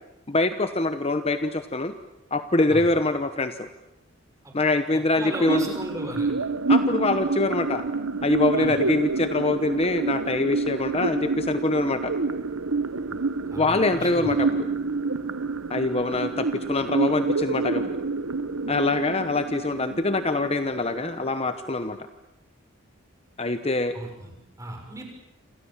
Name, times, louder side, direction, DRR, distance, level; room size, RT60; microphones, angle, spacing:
voice 1, 0.3-2.0 2.3-3.7 4.5-5.7 6.7-7.8 8.2-12.1 13.6-14.7 15.7-18.0 18.7-22.0 23.4-23.9, left 2 dB, 30° left, 9 dB, 1.0 m, -24 dB
voice 2, 4.9-6.3 8.6-8.8 13.1-13.2 13.5-14.4 23.9-24.3 24.6-25.0, right 1 dB, 15° right, 2 dB, 6.4 m, -36 dB
sound 1, 5.3-21.3, right 3 dB, 85° right, 1.3 m, -28 dB
28.0 x 27.5 x 7.4 m, 0.96 s
head